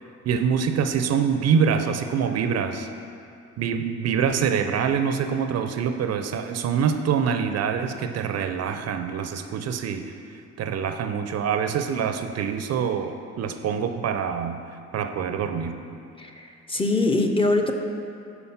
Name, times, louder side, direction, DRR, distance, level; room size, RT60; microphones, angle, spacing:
voice 1, 0.2-2.9 3.6-14.6 14.9-15.8, right 7 dB, 55° right, 7 dB, 0.4 m, -25 dB
voice 2, 16.2-17.7, left 2 dB, 20° left, 3 dB, 0.5 m, -23 dB
5.7 x 4.1 x 5.5 m, 2.5 s
cardioid pair, 90°, 30 cm